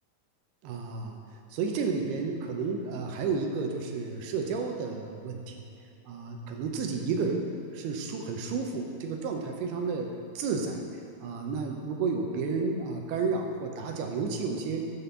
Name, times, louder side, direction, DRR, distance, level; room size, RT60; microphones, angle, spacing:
voice 1, 0.6-1.2 1.5-5.7 6.1-7.5 7.7-10.8 11.2-14.9, right 4 dB, 85° right, 3 dB, 2.8 m, -31 dB
9.6 x 3.7 x 6.9 m, 2.6 s
omnidirectional pair, 4.5 m